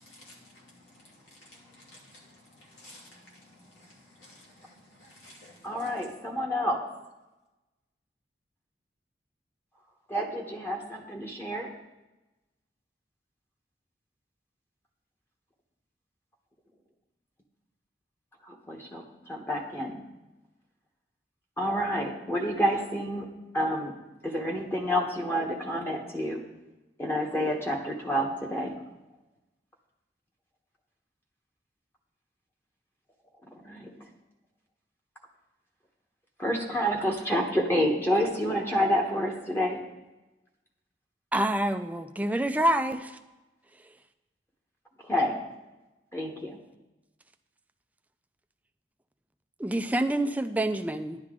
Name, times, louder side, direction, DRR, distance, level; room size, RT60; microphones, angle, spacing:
voice 1, 0.0-5.9, left 1 dB, 90° left, -4 dB, 3.1 m, -54 dB
voice 2, 5.6-6.8 10.1-11.7 18.5-20.0 21.6-23.3 23.5-23.9 24.2-26.4 27.0-28.7 33.6-33.9 36.4-39.8 45.0-45.4 46.1-46.6, equal, 15° left, 0 dB, 1.0 m, -28 dB
voice 3, 41.3-43.2 49.6-51.2, right 1 dB, 10° right, 8 dB, 0.4 m, -27 dB
11.0 x 10.5 x 3.7 m, 1.0 s
head